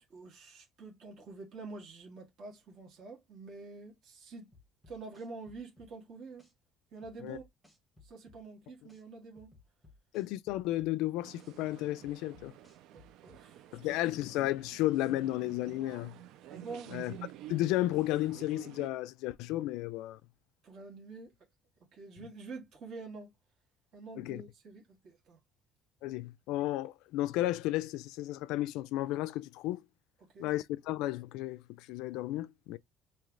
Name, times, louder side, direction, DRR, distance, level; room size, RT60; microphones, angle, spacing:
voice 1, 0.0-4.5 4.9-6.5 6.9-7.5 8.0-9.5 12.9-14.1 16.5-17.0 20.6-21.3 21.9-23.3 23.9-25.4 30.2-30.5, right 3 dB, 45° right, 1.6 m, -47 dB
sound 1, 4.5-5.9 6.4-6.5 7.0-8.4 8.9-9.0 9.4-10.9 11.4-11.5 12.0-13.4 13.9-14.0, left 3 dB, 5° right, 1.2 m, -60 dB
voice 2, 10.1-12.5 13.7-16.2 16.9-17.1 17.5-20.2 24.2-24.4 26.0-29.8 30.4-32.8, left 16 dB, 90° left, 0.3 m, -33 dB
sound 2, 11.2-18.9, right 13 dB, 70° right, 0.4 m, -51 dB
3.2 x 2.8 x 3.6 m
cardioid pair, 170°, 0 cm